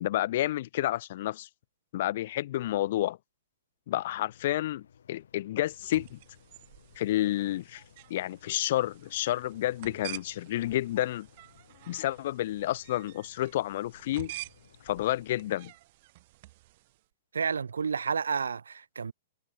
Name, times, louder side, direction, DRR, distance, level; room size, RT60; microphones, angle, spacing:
voice 1, 0.0-1.5 1.9-3.2 3.9-6.2 7.0-7.8 8.1-11.3 11.9-14.3 14.8-15.7, left 14 dB, 60° left, 0.7 m, -30 dB
sound 1, 3.9-15.3, left 8 dB, 75° left, 3.0 m, -60 dB
sound 2, 5.7-17.0, right 19 dB, 55° right, 1.2 m, -49 dB
voice 2, 17.3-19.1, right 6 dB, 85° right, 1.0 m, -30 dB
hypercardioid pair, 120°, 0 cm